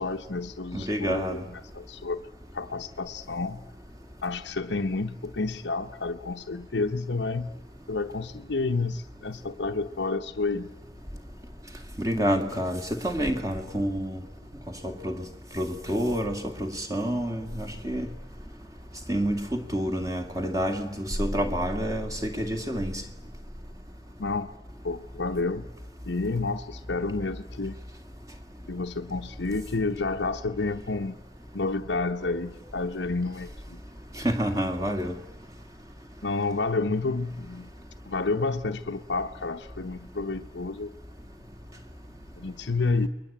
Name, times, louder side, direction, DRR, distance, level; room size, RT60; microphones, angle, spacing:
voice 1, 0.0-2.2 2.5-3.6 4.2-7.5 7.9-10.7 24.2-24.5 24.8-25.7 26.0-27.8 28.7-31.2 31.5-33.8 36.2-37.7 38.1-40.9 42.4-43.1, left 3 dB, 70° left, 3 dB, 0.9 m, -30 dB
voice 2, 0.7-1.4 12.0-14.2 14.8-15.2 15.5-18.1 19.1-23.0 34.2-35.1, equal, 20° right, 5 dB, 2.3 m, -28 dB
29.0 x 22.0 x 8.6 m, 1.0 s
head